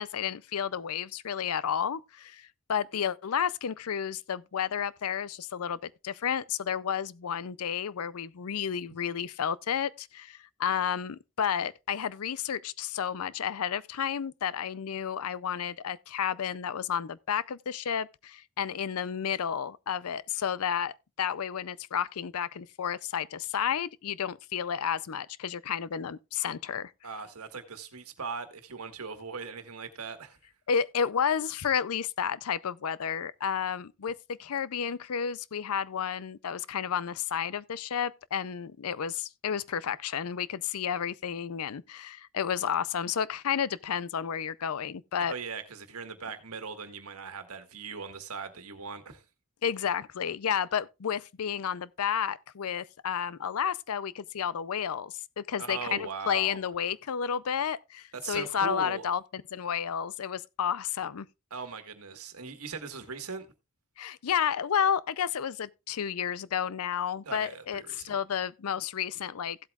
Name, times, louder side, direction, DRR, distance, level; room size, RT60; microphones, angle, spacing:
voice 1, 0.0-26.9 30.7-45.3 49.6-61.3 64.0-69.6, left 8 dB, 80° left, 0.5 m, -31 dB
voice 2, 27.0-30.4 45.2-49.2 55.6-56.6 58.2-59.1 61.5-63.5 67.2-68.1, right 5 dB, 85° right, 1.5 m, -39 dB
16.0 x 8.1 x 2.4 m
head